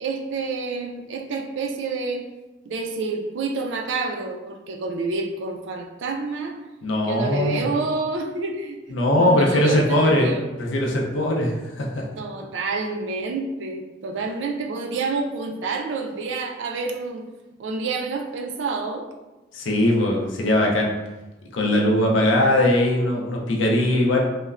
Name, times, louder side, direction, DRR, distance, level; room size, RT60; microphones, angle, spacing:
voice 1, 0.0-2.2 2.6-6.6 7.1-8.8 9.1-10.4 12.2-17.2 17.6-19.0, right 3 dB, 75° right, 2 dB, 0.4 m, -28 dB
voice 2, 6.8-7.6 8.9-10.3 10.6-12.0 19.5-20.9 21.5-24.2, left 1 dB, 85° left, 0 dB, 0.5 m, -20 dB
3.1 x 2.1 x 2.4 m, 1.1 s
head